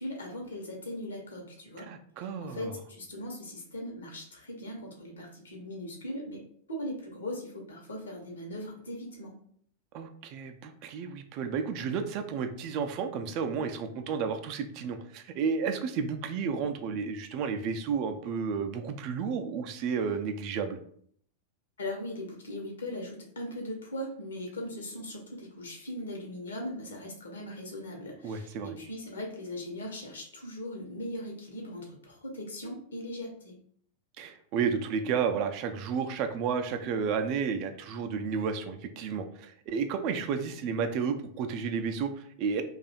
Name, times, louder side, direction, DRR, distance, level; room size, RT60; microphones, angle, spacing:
voice 1, 0.0-1.9 2.2-6.4 6.7-9.3 21.8-33.6, left 1 dB, 70° left, 1 dB, 0.9 m, -39 dB
voice 2, 1.8-2.7 9.9-20.8 28.2-28.7 34.2-42.6, right 6 dB, 45° right, 7 dB, 0.4 m, -32 dB
2.7 x 2.3 x 4.1 m, 0.63 s
figure-of-eight pair, 90°, 0 cm